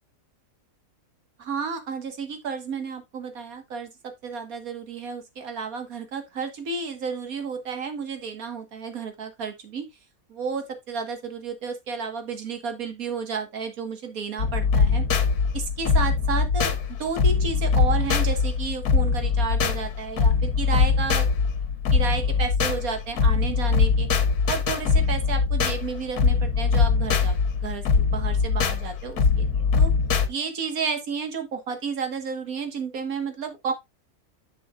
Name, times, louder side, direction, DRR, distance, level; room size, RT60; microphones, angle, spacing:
voice 1, 1.4-9.9 10.3-15.0 15.5-21.5 21.9-24.1 24.5-29.5 29.8-29.9 30.3-33.7, right 5 dB, 70° right, 1.9 m, -32 dB
sound 1, 14.4-30.3, left 5 dB, 85° left, 1.6 m, -22 dB
10.0 x 6.1 x 2.3 m
omnidirectional pair, 1.6 m